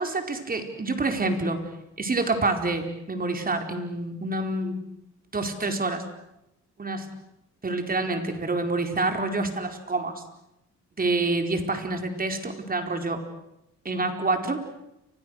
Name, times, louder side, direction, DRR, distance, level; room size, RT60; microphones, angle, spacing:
voice 1, 0.0-1.6 2.0-4.8 5.3-6.0 6.8-7.1 7.6-10.2 11.0-13.2 13.8-14.6, right 2 dB, 30° right, 5 dB, 4.6 m, -27 dB
30.0 x 25.5 x 6.6 m, 0.86 s
cardioid pair, 90°, 30 cm